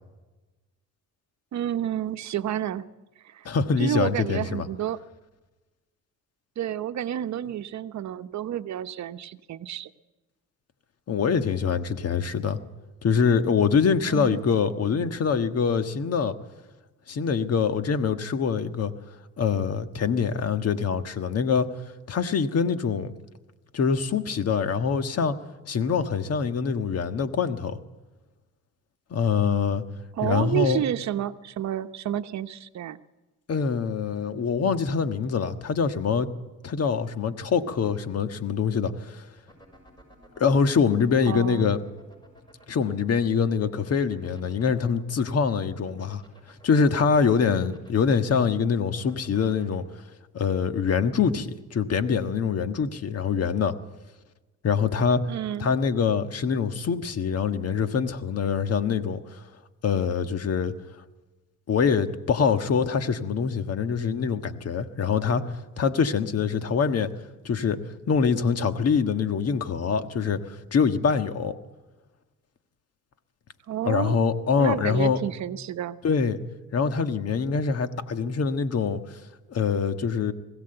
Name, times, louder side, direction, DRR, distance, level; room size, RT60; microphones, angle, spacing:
voice 1, 1.5-2.9 3.2-3.5 3.8-5.0 6.6-9.9 14.0-14.5 30.2-33.0 41.3-41.7 55.3-55.7 73.7-74.2 74.6-76.0, right 10 dB, 65° right, 11 dB, 0.9 m, -30 dB
voice 2, 3.4-4.7 11.1-12.6 13.0-16.3 17.1-18.9 19.4-21.7 22.1-23.1 23.7-25.4 25.7-27.8 29.1-29.8 30.2-30.8 33.5-36.3 36.6-39.2 40.4-41.8 42.7-46.2 46.6-49.8 50.3-53.7 54.6-55.2 55.6-59.2 59.8-60.7 61.7-65.4 65.8-67.1 67.4-67.8 68.1-71.6 73.8-75.2 76.0-76.4 76.7-79.0 79.5-80.3, left 6 dB, 55° left, 9 dB, 1.5 m, -24 dB
sound 1, 39.4-49.8, equal, 15° left, 6.8 m, -53 dB
21.0 x 16.0 x 7.9 m, 1.2 s
cardioid pair, 90°, 30 cm